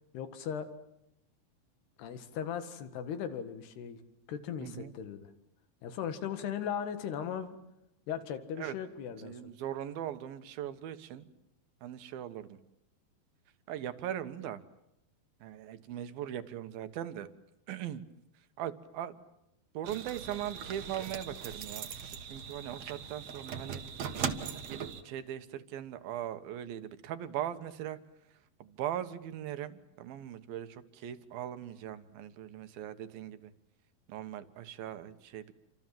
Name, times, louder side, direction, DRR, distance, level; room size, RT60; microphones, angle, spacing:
voice 1, 0.1-0.7 2.0-4.0 4.3-5.3 5.8-7.6 8.1-9.5, left 8 dB, 90° left, 10 dB, 3.9 m, -38 dB
voice 2, 4.6-4.9 8.6-8.8 9.2-11.3 11.8-12.6 13.7-14.6 15.4-17.3 17.7-18.0 18.6-19.2 19.7-23.8 24.5-28.0 28.6-33.5 34.1-35.5, right 11 dB, 70° right, 11 dB, 3.0 m, -40 dB
sound 1, 19.8-25.0, right 7 dB, 55° right, 2.2 m, -39 dB
28.5 x 26.0 x 7.7 m, 0.82 s
omnidirectional pair, 4.5 m